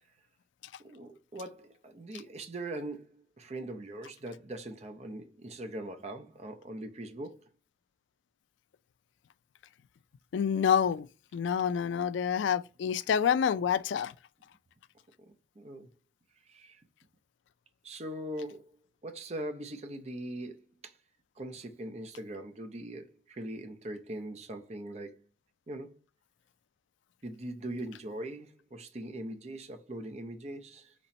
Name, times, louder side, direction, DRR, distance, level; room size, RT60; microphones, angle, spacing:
voice 1, 0.8-7.5 15.2-15.9 16.5-16.8 17.8-18.8 19.0-21.0 21.4-25.2 25.7-26.0 27.2-30.9, right 1 dB, 35° right, 0.6 m, -41 dB
voice 2, 10.3-11.1 11.3-14.1, left 7 dB, 90° left, 0.3 m, -27 dB
4.2 x 3.0 x 4.2 m
head